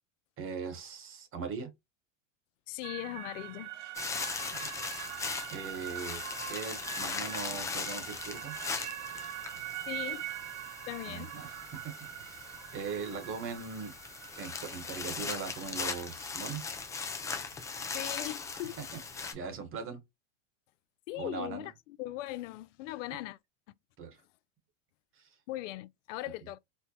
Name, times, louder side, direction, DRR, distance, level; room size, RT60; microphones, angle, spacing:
voice 1, 0.4-1.7 4.3-4.5 5.5-6.2 6.5-8.6 11.1-11.9 12.2-13.9 14.4-16.7 18.5-18.8 19.1-20.0 21.1-21.7 24.0-24.2 25.2-25.3, right 5 dB, 35° right, 1.2 m, -40 dB
voice 2, 2.7-3.7 9.9-10.3 10.9-11.3 17.9-18.8 21.1-21.7 22.0-23.4 25.5-26.6, left 16 dB, 75° left, 0.5 m, -39 dB
sound 1, 2.8-19.2, right 12 dB, 70° right, 0.7 m, -44 dB
sound 2, 3.9-19.3, left 5 dB, 10° left, 0.3 m, -39 dB
4.4 x 2.1 x 2.7 m
supercardioid pair, 120°, 38 cm